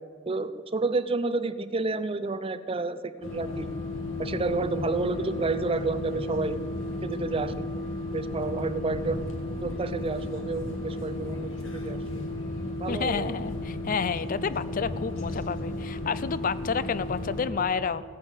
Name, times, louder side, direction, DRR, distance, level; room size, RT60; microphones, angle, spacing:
voice 1, 0.3-3.7 4.2-6.6 7.0-7.7 8.1-9.2 9.6-12.0 12.8-13.3, right 3 dB, 30° right, 14 dB, 0.5 m, -30 dB
sound 1, 3.2-17.5, left 1 dB, 80° left, 2.1 m, -34 dB
voice 2, 12.9-18.0, left 5 dB, 45° left, 17 dB, 0.4 m, -30 dB
15.5 x 10.5 x 8.1 m, 2.1 s
head